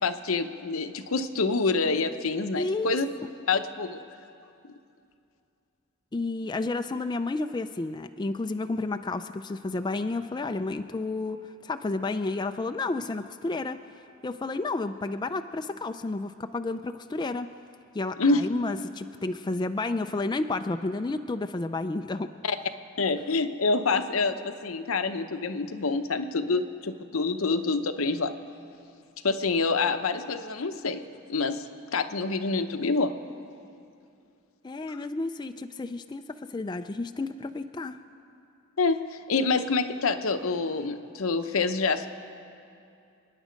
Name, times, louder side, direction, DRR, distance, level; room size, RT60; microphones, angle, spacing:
voice 1, 0.0-3.1 3.5-4.0 18.2-18.4 22.4-22.6 23.0-28.3 29.2-31.0 31.3-31.7 31.9-33.1 38.8-42.1, left 3 dB, 85° left, 8 dB, 0.8 m, -27 dB
voice 2, 2.6-3.0 6.1-13.8 14.2-17.5 17.9-22.3 34.6-38.0, left 3 dB, 20° left, 8 dB, 0.3 m, -31 dB
28.5 x 9.8 x 5.2 m, 2.6 s
head